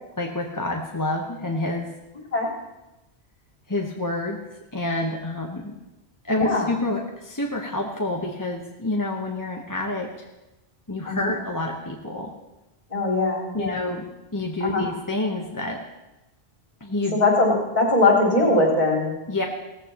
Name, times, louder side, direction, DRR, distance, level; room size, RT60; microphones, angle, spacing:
voice 1, 0.2-1.9 3.7-4.4 4.7-5.7 6.2-10.3 10.9-12.3 13.5-14.1 14.3-15.8 16.8-17.2 19.3-19.4, left 2 dB, 20° left, 0 dB, 1.0 m, -28 dB
voice 2, 6.4-6.7 11.1-11.3 12.9-13.8 14.6-14.8 17.1-19.2, left 2 dB, 45° left, -3 dB, 4.2 m, -21 dB
17.5 x 15.0 x 2.9 m, 1.0 s
omnidirectional pair, 1.1 m